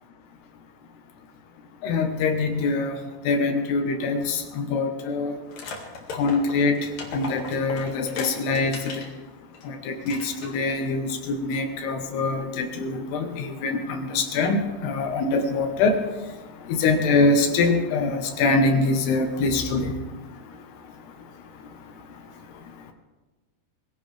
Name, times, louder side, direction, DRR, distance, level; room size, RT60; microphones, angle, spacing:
voice 1, 1.8-3.0 3.2-5.4 6.1-6.8 7.1-9.0 9.6-16.0 16.7-19.9, left 3 dB, 70° left, 5 dB, 3.2 m, -24 dB
sound 1, 5.5-9.1 9.5-9.7 10.0-10.8, left 3 dB, 50° left, 2.8 m, -37 dB
22.0 x 16.5 x 3.4 m, 1.2 s
omnidirectional pair, 5.0 m